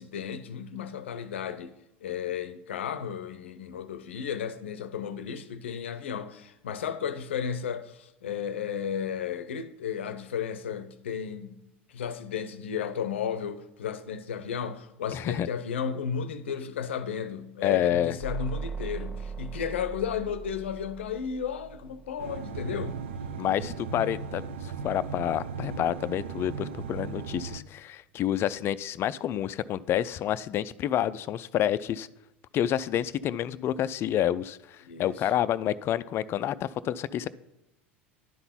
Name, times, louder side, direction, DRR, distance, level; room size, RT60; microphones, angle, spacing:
voice 1, 0.0-1.7 2.0-11.6 11.9-23.0 34.8-35.3, left 7 dB, 80° left, 0.6 m, -34 dB
voice 2, 15.1-15.5 17.6-18.2 23.4-32.1 32.5-37.3, left 11 dB, 40° left, 0.4 m, -29 dB
sound 1, 18.2-22.9, right 5 dB, 5° left, 1.2 m, -39 dB
sound 2, 22.2-27.6, right 5 dB, 75° right, 0.5 m, -37 dB
10.5 x 3.9 x 5.7 m
hypercardioid pair, 85°, 6 cm